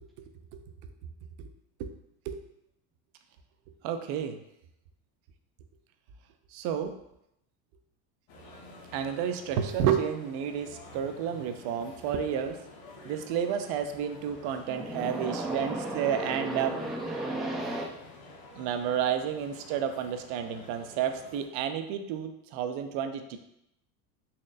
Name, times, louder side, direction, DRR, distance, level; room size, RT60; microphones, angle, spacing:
voice 1, 3.8-4.4 6.5-6.9 8.9-12.6 13.0-16.7 18.5-23.4, right 8 dB, 55° right, 8 dB, 0.6 m, -31 dB
sound 1, 8.3-21.4, left 2 dB, 50° left, 1.1 m, -50 dB
voice 2, 14.7-17.8, right 1 dB, ahead, -1 dB, 0.4 m, -34 dB
4.3 x 3.0 x 2.5 m, 0.81 s
hypercardioid pair, 85°, 48 cm